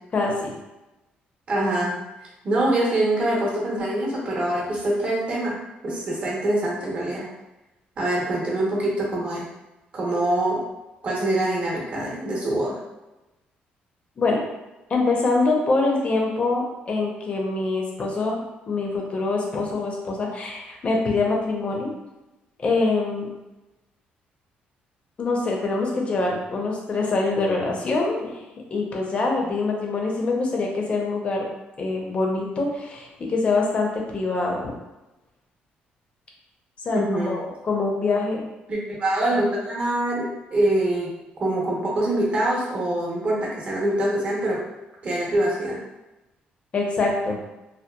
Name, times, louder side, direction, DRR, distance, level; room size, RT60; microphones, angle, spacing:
voice 1, 0.1-0.5 14.2-14.4 14.9-21.9 22.6-23.3 25.2-28.4 28.7-31.4 31.8-34.7 36.8-38.4 46.7-47.4, left 3 dB, 35° left, -1 dB, 0.6 m, -24 dB
voice 2, 1.5-1.9 2.4-5.6 5.8-7.2 8.0-9.4 9.9-10.6 11.0-12.8 29.4-29.6 36.9-37.4 38.7-41.1 41.4-44.6 45.0-45.8, right 1 dB, 40° right, -5 dB, 0.8 m, -24 dB
2.8 x 2.2 x 2.2 m, 1.0 s
cardioid pair, 130°, 3 cm